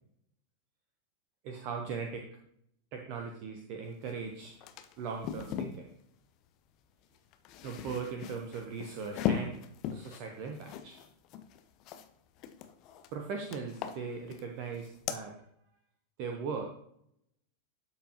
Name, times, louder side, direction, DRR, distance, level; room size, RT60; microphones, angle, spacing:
voice 1, 1.4-2.2 2.9-4.5 5.0-5.9 7.6-9.6 9.9-11.0 13.1-15.3 16.2-16.6, right 5 dB, 45° right, 3 dB, 1.0 m, -39 dB
sound 1, 4.1-4.2 4.5-5.8 7.2-12.1 12.4-13.1 13.5-14.5 14.7-15.2, left 9 dB, 40° left, 0.7 m, -38 dB
12.0 x 4.6 x 3.0 m, 0.71 s
figure-of-eight pair, 90°, 0 cm